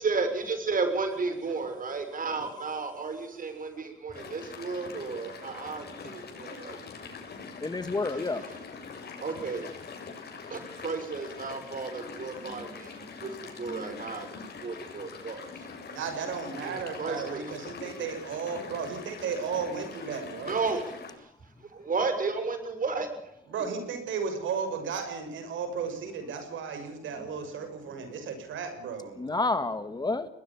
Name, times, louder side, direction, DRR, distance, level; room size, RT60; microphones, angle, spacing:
voice 1, 0.0-6.8 8.2-8.3 9.2-9.7 10.5-13.3 13.6-14.3 14.6-15.4 16.6-17.4 20.5-20.8 21.8-23.1, right 4 dB, 45° right, 8 dB, 6.5 m, -32 dB
sound 1, 4.1-21.1, left 5 dB, 55° left, 7.0 m, -43 dB
voice 2, 7.6-8.4 29.2-30.3, left 3 dB, 20° left, 11 dB, 1.8 m, -29 dB
voice 3, 15.9-20.5 23.5-29.2, right 6 dB, 75° right, 7 dB, 6.6 m, -34 dB
21.5 x 20.5 x 7.3 m, 0.80 s
cardioid pair, 90°, 20 cm